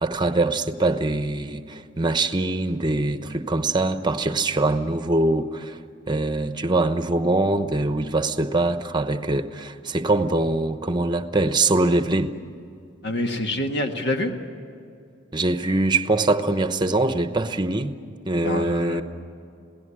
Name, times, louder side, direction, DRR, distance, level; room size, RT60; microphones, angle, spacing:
voice 1, 0.0-5.8 6.1-12.3 15.3-17.9 18.3-19.0, right 2 dB, 20° right, 1.0 m, -23 dB
voice 2, 13.0-14.3 18.4-19.0, left 1 dB, 60° left, 1.7 m, -26 dB
27.5 x 17.5 x 9.9 m
head